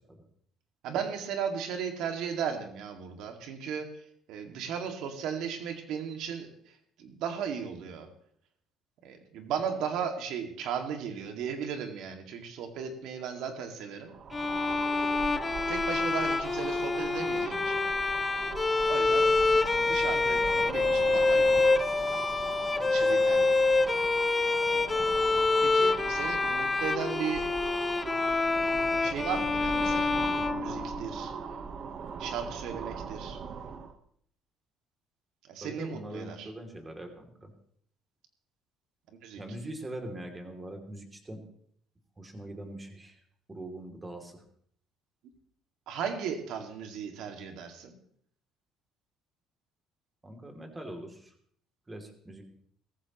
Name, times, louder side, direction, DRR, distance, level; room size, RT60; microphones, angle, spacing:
voice 1, 0.8-3.9 4.3-8.1 9.0-14.1 15.7-17.9 18.8-19.3 19.9-20.4 20.6-21.8 22.9-24.1 25.6-27.4 29.0-31.3 32.2-33.4 35.5-36.5 39.2-39.4 45.9-48.0, right 7 dB, 75° right, 5 dB, 2.2 m, -36 dB
sound 1, 14.1-33.9, right 6 dB, 50° right, 1.2 m, -40 dB
Bowed string instrument, 14.3-31.3, left 3 dB, 25° left, 0.5 m, -27 dB
voice 2, 35.6-37.5 39.4-41.4 42.2-43.2 43.5-44.4 50.2-51.3 51.9-52.4, right 1 dB, 20° right, 4 dB, 2.9 m, -42 dB
17.5 x 14.5 x 3.1 m, 0.65 s
supercardioid pair, 90°, 0 cm